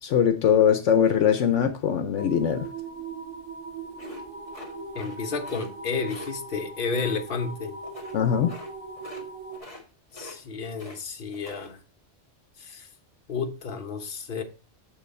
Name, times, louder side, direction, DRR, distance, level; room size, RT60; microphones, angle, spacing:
voice 1, 0.0-2.7 8.1-8.5, left 8 dB, 75° left, 1.1 m, -21 dB
sound 1, 2.2-9.6, right 3 dB, 75° right, 3.4 m, -39 dB
sound 2, 4.0-5.2 5.4-5.7 6.1-6.3 7.8-8.2 8.5-8.7 9.0-9.3 9.5-9.8 10.1-11.0 11.3-11.7, left 2 dB, 30° left, 1.9 m, -44 dB
voice 2, 4.9-7.7 10.1-11.8 12.6-12.9 13.3-14.4, left 4 dB, 45° left, 1.3 m, -31 dB
7.4 x 6.1 x 4.3 m
omnidirectional pair, 1.3 m